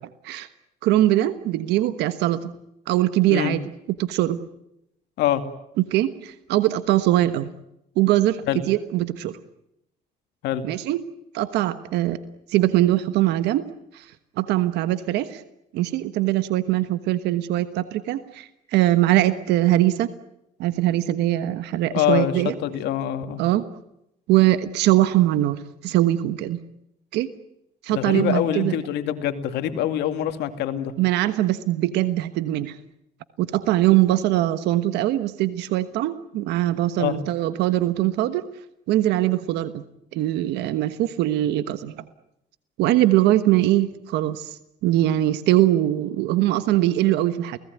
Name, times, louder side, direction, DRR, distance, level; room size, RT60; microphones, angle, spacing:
voice 1, 0.8-2.5 2.9-3.6 4.0-4.4 5.9-7.5 8.0-9.4 10.6-11.0 11.3-12.2 12.5-13.7 13.9-14.0 14.4-15.4 15.7-20.1 20.6-22.5 23.4-23.6 24.3-26.6 27.1-27.3 27.8-28.8 31.0-32.8 33.4-38.4 38.9-39.8 40.1-41.9 42.8-44.6 44.8-47.6, right 14 dB, 85° right, 12 dB, 1.3 m, -21 dB
voice 2, 21.9-22.3 22.6-23.4 27.9-30.9 37.0-37.2, left 11 dB, 85° left, 8 dB, 2.4 m, -24 dB
29.5 x 18.5 x 9.5 m, 0.82 s
cardioid pair, 110°, 17 cm